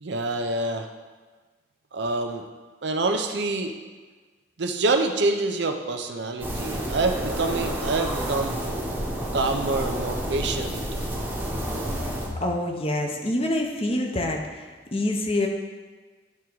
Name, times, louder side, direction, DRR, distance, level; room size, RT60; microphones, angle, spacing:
voice 1, 0.0-0.9 1.9-2.5 2.8-3.7 4.6-8.6 9.3-10.8, right 2 dB, 65° right, 5 dB, 0.6 m, -26 dB
sound 1, 6.4-12.3, right 1 dB, 10° right, 1.0 m, -30 dB
voice 2, 11.9-15.5, left 1 dB, 30° left, 2 dB, 0.8 m, -27 dB
10.5 x 3.6 x 4.6 m, 1.4 s
head